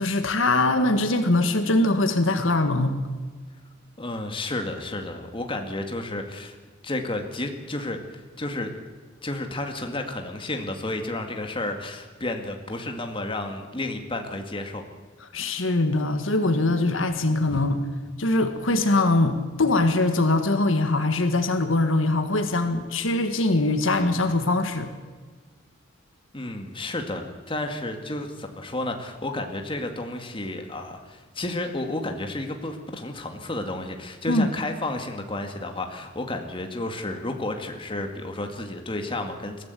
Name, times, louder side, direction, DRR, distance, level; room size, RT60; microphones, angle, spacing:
voice 1, 0.0-3.0 15.3-17.8 18.2-24.9 34.3-34.5, left 2 dB, 75° left, 8 dB, 1.7 m, -22 dB
voice 2, 4.0-6.6 6.8-8.0 8.4-8.7 9.2-14.9 17.5-17.6 26.3-39.6, left 2 dB, 25° left, 4 dB, 2.1 m, -31 dB
22.5 x 15.0 x 8.4 m, 1.5 s
head